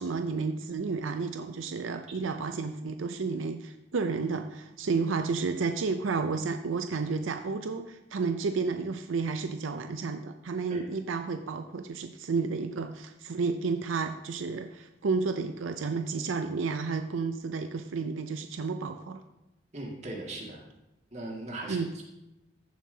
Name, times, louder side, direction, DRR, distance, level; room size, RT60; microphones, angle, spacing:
voice 1, 0.0-19.2 21.7-21.9, right 4 dB, 85° right, 7 dB, 0.5 m, -31 dB
voice 2, 19.7-20.6 21.1-22.0, right 2 dB, 35° right, -2 dB, 2.1 m, -39 dB
14.5 x 7.2 x 2.8 m, 0.95 s
head